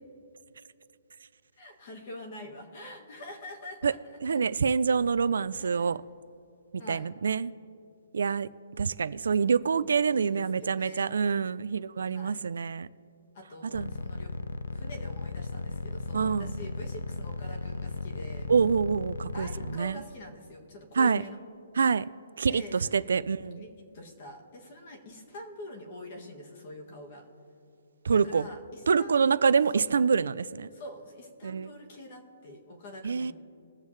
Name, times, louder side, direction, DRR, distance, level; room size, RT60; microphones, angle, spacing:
voice 1, 1.6-4.2 5.6-5.9 6.8-7.1 10.1-11.2 12.1-12.4 13.3-14.3 14.7-18.5 19.3-21.4 22.4-23.0 23.6-23.7 23.9-27.3 28.2-29.1 29.7-29.9 30.7-33.3, left 1 dB, 35° left, 2 dB, 1.6 m, -45 dB
voice 2, 4.2-6.0 6.9-7.5 8.1-8.5 8.8-12.9 13.7-13.9 16.1-16.5 18.5-20.0 21.0-21.2 21.8-22.0 22.4-23.7 28.0-28.5 28.9-30.7 31.4-31.7 33.0-33.3, right 6 dB, 75° right, 16 dB, 0.4 m, -26 dB
sound 1, 13.7-19.8, left 3 dB, 85° left, 0.6 m, -35 dB
21.5 x 7.3 x 3.3 m, 2.6 s
hypercardioid pair, 175°, 0 cm